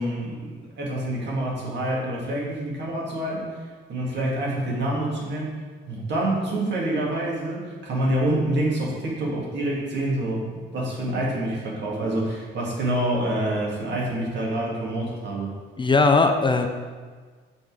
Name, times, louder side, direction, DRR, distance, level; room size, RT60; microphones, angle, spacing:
voice 1, 0.0-3.6 3.9-5.6 5.9-15.6, right 1 dB, 65° right, -3 dB, 1.9 m, -27 dB
voice 2, 15.8-16.7, left 3 dB, 25° left, 5 dB, 0.5 m, -19 dB
5.9 x 4.1 x 4.8 m, 1.5 s
cardioid pair, 90°, 20 cm